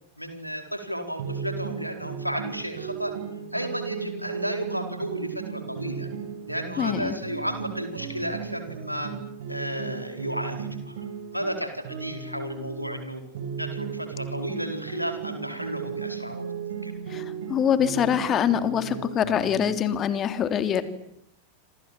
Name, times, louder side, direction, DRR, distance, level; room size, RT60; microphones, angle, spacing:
voice 1, 0.2-3.1 3.5-6.1 6.5-9.1 9.5-11.0 11.3-13.2 13.5-16.9, equal, 90° right, 6 dB, 4.4 m, -33 dB
sound 1, 1.2-13.0 13.3-19.9, right 6 dB, 60° right, 6.7 m, -36 dB
voice 2, 6.8-7.1 17.1-20.8, left 9 dB, 30° left, 11 dB, 3.0 m, -24 dB
27.5 x 27.0 x 7.6 m, 0.77 s
figure-of-eight pair, 90°, 0 cm